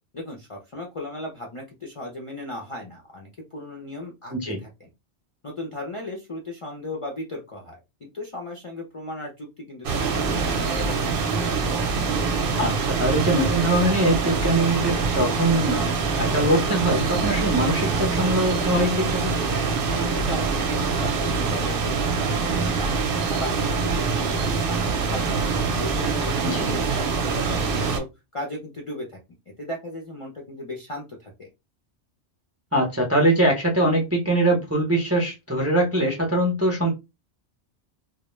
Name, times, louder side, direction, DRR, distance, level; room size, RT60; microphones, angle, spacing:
voice 1, 0.1-4.9 5.4-11.3 20.0-25.5 25.8-28.1 28.3-29.2 29.6-31.5, left 1 dB, 50° left, 0 dB, 0.4 m, -36 dB
sound 1, 9.8-28.0, right 4 dB, 60° right, 0.7 m, -24 dB
voice 2, 12.6-19.3 26.4-26.6 32.7-36.9, right 1 dB, 25° right, 0 dB, 0.4 m, -22 dB
2.2 x 2.1 x 3.0 m, 0.24 s
omnidirectional pair, 1.2 m